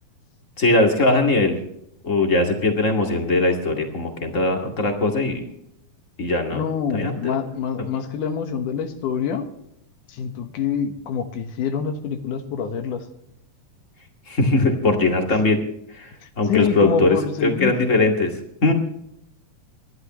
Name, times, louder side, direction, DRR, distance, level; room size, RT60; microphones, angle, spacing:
voice 1, 0.6-1.6 2.0-5.4 6.2-6.6 6.9-7.4 14.3-15.6 15.9-16.1 16.4-18.3 18.6-18.7, left 2 dB, 25° left, 3 dB, 2.1 m, -20 dB
voice 2, 6.5-9.5 10.1-13.1 16.2-17.9, left 7 dB, 85° left, 7 dB, 2.8 m, -26 dB
26.5 x 11.5 x 3.1 m, 0.75 s
omnidirectional pair, 3.6 m